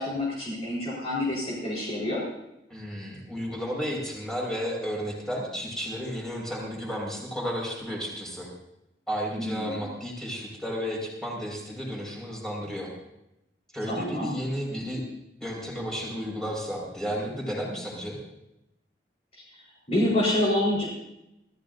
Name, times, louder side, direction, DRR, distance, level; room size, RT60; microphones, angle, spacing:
voice 1, 0.0-2.2 9.4-9.9 13.9-14.3 19.9-20.8, left 1 dB, 35° left, -5 dB, 4.3 m, -27 dB
voice 2, 2.7-8.5 9.1-12.9 13.7-15.0 15.4-18.2, equal, 5° left, -2 dB, 5.3 m, -33 dB
25.5 x 15.5 x 2.7 m, 0.88 s
head